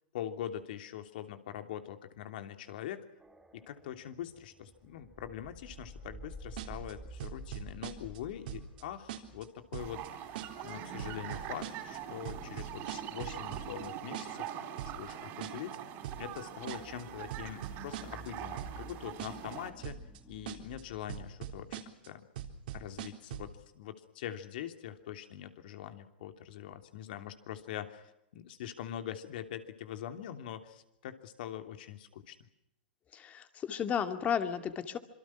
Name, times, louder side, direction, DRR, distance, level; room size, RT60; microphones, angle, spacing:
voice 1, 0.1-3.0 3.5-10.4 10.6-14.5 14.8-15.8 16.2-19.9 20.3-22.2 22.7-32.4, left 10 dB, 65° left, 7 dB, 3.1 m, -43 dB
sound 1, 3.2-21.0, right 2 dB, 5° right, 2.1 m, -53 dB
sound 2, 6.6-6.9 7.2-8.2 8.5-8.8 9.1-9.4 9.7-10.1 10.3-10.7 11.0-12.0 12.2-13.9 14.1-14.5 14.8-15.1 15.4-15.8 16.0-16.4 16.7-17.0 17.3-18.3 18.6-18.9 19.2-19.5 19.8-20.2 20.5-20.8 21.1-22.1 22.4-23.5, right 10 dB, 65° right, 3.9 m, -41 dB
sound 3, 9.8-19.7, right 10 dB, 40° right, 4.2 m, -43 dB
voice 2, 33.1-35.0, left 8 dB, 25° left, 8 dB, 2.4 m, -33 dB
27.0 x 23.5 x 6.1 m, 0.83 s
hypercardioid pair, 130°, 6 cm